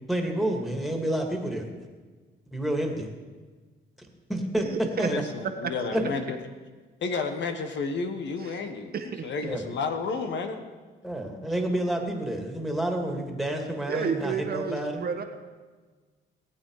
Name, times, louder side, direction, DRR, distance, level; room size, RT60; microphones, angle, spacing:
voice 1, 0.1-1.6 2.5-3.1 4.3-4.6 5.0-5.2 5.9-6.0 9.4-9.7 11.0-15.1, right 1 dB, ahead, 1 dB, 2.6 m, -29 dB
voice 2, 4.6-5.1 5.6-5.7 8.4-8.6 8.9-9.5 13.9-15.2, right 6 dB, 50° right, 5 dB, 1.4 m, -31 dB
voice 3, 5.1-6.4 7.0-8.9 9.2-10.6, left 4 dB, 65° left, 7 dB, 1.4 m, -31 dB
18.5 x 8.9 x 4.9 m, 1.4 s
cardioid pair, 90°, 20 cm